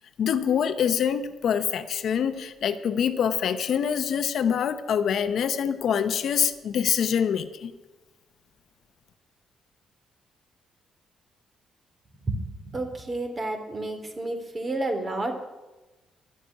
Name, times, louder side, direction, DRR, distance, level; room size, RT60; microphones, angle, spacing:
voice 1, 0.2-7.7, left 8 dB, 65° left, 1.0 m, -25 dB
voice 2, 12.7-15.3, right 2 dB, 30° right, 3.1 m, -30 dB
12.0 x 9.8 x 9.6 m
cardioid pair, 90°, 0 cm